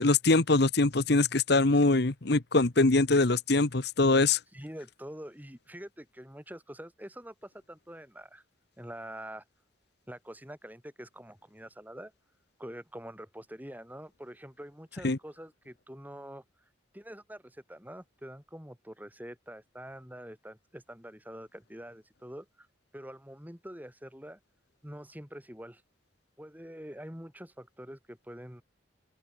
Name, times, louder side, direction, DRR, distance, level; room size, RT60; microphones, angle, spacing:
voice 1, 0.0-4.4 15.0-15.2, left 3 dB, 55° left, 1.2 m, -23 dB
voice 2, 4.5-8.4 8.8-9.4 10.1-12.1 12.6-16.4 16.9-22.7 22.9-24.4 24.8-25.8 26.4-28.6, equal, 10° right, 6.2 m, -45 dB
open air
head